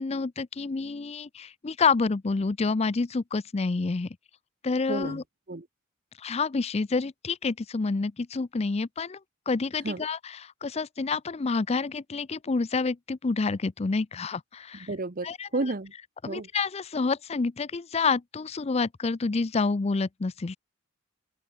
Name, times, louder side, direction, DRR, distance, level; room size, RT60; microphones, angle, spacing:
voice 1, 0.0-4.2 4.6-5.2 6.2-9.2 9.5-14.9 15.2-15.5 16.2-20.6, left 4 dB, 30° left, 0.5 m, -28 dB
voice 2, 4.9-5.2 5.5-5.7 9.8-10.0 14.7-15.9 16.2-16.5, right 2 dB, 45° right, 1.1 m, -32 dB
open air
head